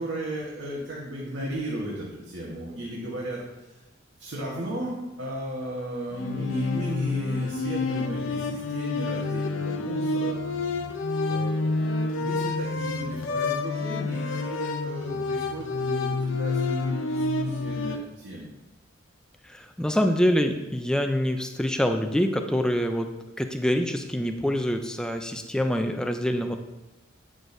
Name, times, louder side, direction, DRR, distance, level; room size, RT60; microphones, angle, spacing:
voice 1, 0.0-3.8 4.2-10.4 11.2-18.5, right 1 dB, 65° right, -5 dB, 1.2 m, -35 dB
sound 1, 6.1-18.0, left 3 dB, 75° left, 0.6 m, -28 dB
voice 2, 19.4-23.1 23.4-26.6, equal, 5° left, 5 dB, 0.4 m, -25 dB
8.8 x 6.3 x 2.6 m, 1.0 s
head